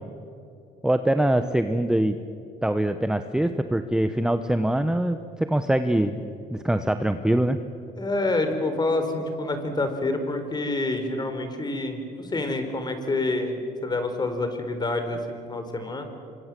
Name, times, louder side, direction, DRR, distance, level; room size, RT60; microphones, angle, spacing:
voice 1, 0.8-2.2 2.6-6.2 6.5-7.6, right 1 dB, 5° right, 9 dB, 1.0 m, -23 dB
voice 2, 8.0-16.0, left 2 dB, 25° left, 7 dB, 4.3 m, -27 dB
27.0 x 24.5 x 7.7 m, 2.6 s
cardioid pair, 110°, 17 cm